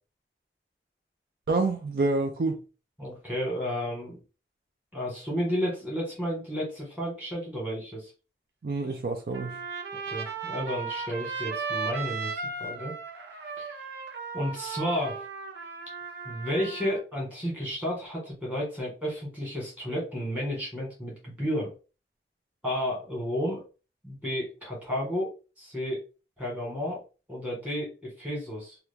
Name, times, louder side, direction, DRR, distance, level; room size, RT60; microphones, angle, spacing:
voice 1, 1.5-2.6 8.6-9.6, right 3 dB, 55° right, 0.4 m, -27 dB
voice 2, 3.0-4.2 4.9-8.1 10.1-12.9 13.6-13.8 14.3-15.2 16.2-21.7 22.6-23.6 24.0-26.0 26.4-27.0 27.3-28.8, equal, 10° right, 1.5 m, -32 dB
Trumpet, 9.3-17.0, right 4 dB, 85° right, 0.8 m, -36 dB
2.9 x 2.4 x 3.4 m
head